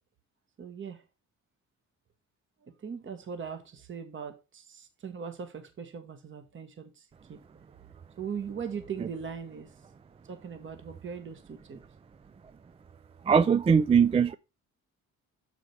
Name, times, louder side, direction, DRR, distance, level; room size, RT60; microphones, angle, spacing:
voice 1, 0.6-1.0 2.6-7.4 8.2-9.7 10.3-11.8, right 6 dB, 40° right, 1.3 m, -40 dB
voice 2, 13.3-14.3, right 6 dB, 20° right, 0.3 m, -21 dB
6.8 x 5.0 x 4.6 m
cardioid pair, 90°, 30 cm